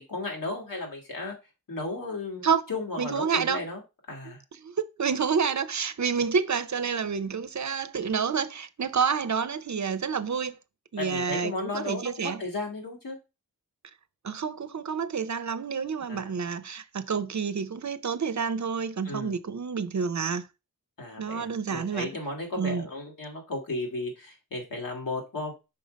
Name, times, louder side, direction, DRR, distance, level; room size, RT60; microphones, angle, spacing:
voice 1, 0.0-1.3 1.7-3.8 4.1-4.4 11.0-13.2 16.1-16.3 19.0-19.4 21.0-25.5, left 2 dB, 70° left, 2.6 m, -34 dB
voice 2, 3.0-3.6 4.6-10.6 10.9-12.4 14.2-20.5 21.2-22.1 22.6-22.9, right 6 dB, 55° right, 0.6 m, -29 dB
5.7 x 3.9 x 5.1 m
wide cardioid pair, 65°, 34 cm